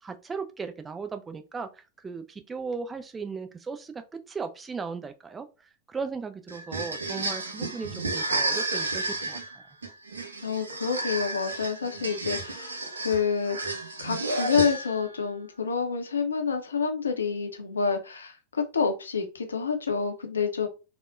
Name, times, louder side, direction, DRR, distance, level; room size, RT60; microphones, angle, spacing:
voice 1, 0.0-4.0 4.3-5.5 5.9-9.6, right 5 dB, 15° right, 0.3 m, -37 dB
sound 1, 6.5-15.1, right 2 dB, 75° right, 0.5 m, -32 dB
voice 2, 10.4-20.7, left 5 dB, 70° left, 0.5 m, -28 dB
3.4 x 2.1 x 2.4 m
figure-of-eight pair, 90°, 0 cm